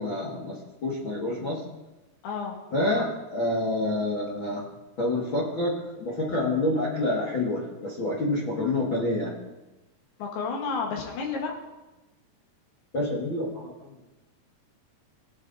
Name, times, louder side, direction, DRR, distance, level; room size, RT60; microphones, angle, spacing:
voice 1, 0.0-1.6 2.7-4.7 5.0-9.3 12.9-14.1, left 1 dB, 50° left, -6 dB, 1.5 m, -28 dB
voice 2, 2.2-2.6 10.2-11.5, left 5 dB, 75° left, 1 dB, 3.2 m, -31 dB
21.0 x 8.7 x 2.6 m, 1.1 s
omnidirectional pair, 4.7 m